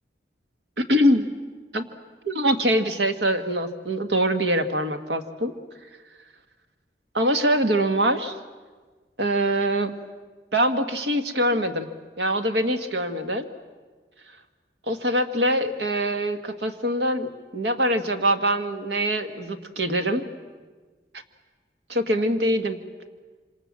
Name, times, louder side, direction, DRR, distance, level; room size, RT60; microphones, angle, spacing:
voice 1, 0.8-1.3 1.7-1.9 2.2-5.5 7.1-8.4 9.2-9.9 10.5-11.9 12.2-13.5 14.9-20.2 21.9-22.8, equal, 80° right, 7 dB, 1.7 m, -23 dB
27.0 x 26.0 x 7.5 m, 1.4 s
head